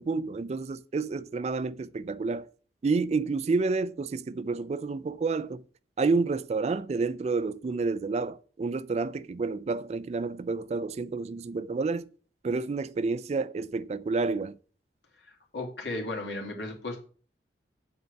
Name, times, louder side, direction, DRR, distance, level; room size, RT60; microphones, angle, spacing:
voice 1, 0.0-2.5 2.8-5.6 6.0-12.1 12.4-14.6, right 4 dB, 35° right, 0.3 m, -29 dB
voice 2, 15.2-17.0, left 2 dB, 75° left, 2.3 m, -35 dB
7.9 x 4.5 x 6.6 m
head